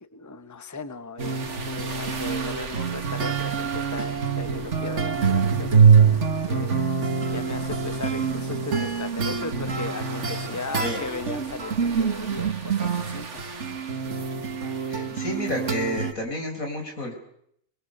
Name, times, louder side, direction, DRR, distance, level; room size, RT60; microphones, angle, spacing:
voice 1, 0.0-6.9 7.3-13.4 15.1-15.2, left 3 dB, 15° left, 11 dB, 1.1 m, -37 dB
sound 1, 1.2-16.1, right 6 dB, 60° right, 2.0 m, -25 dB
voice 2, 14.9-17.1, left 1 dB, 90° left, 2 dB, 5.0 m, -30 dB
25.5 x 21.0 x 6.6 m, 0.72 s
omnidirectional pair, 1.4 m